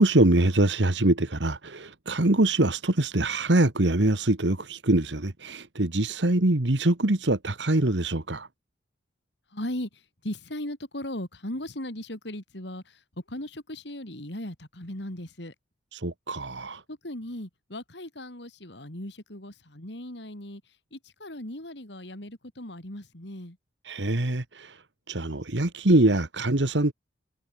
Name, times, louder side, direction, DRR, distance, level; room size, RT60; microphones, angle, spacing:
voice 1, 0.0-8.5 15.9-16.8 23.9-24.8 25.1-26.9, right 2 dB, 75° right, 1.7 m, -23 dB
voice 2, 9.5-15.5 16.9-23.6, left 1 dB, 65° left, 4.1 m, -38 dB
head